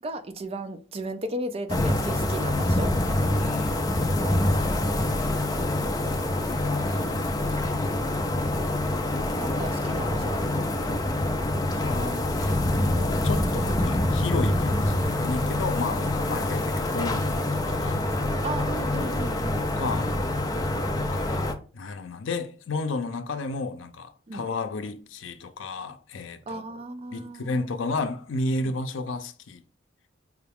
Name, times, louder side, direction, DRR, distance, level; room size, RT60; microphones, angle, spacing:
voice 1, 0.0-3.0 4.2-4.8 6.0-6.7 9.1-10.8 16.6-16.7 18.4-19.7 20.5-20.7 24.3-24.5 26.5-27.6 28.6-28.7, right 1 dB, 30° right, 0.5 m, -36 dB
sound 1, 1.7-21.5, left 1 dB, 20° left, 0.5 m, -26 dB
voice 2, 3.4-3.8 5.0-5.9 6.3-7.9 11.7-12.6 13.0-18.0 19.8-20.2 21.0-26.8 27.1-29.6, left 3 dB, 80° left, 0.5 m, -33 dB
4.9 x 2.3 x 3.5 m
head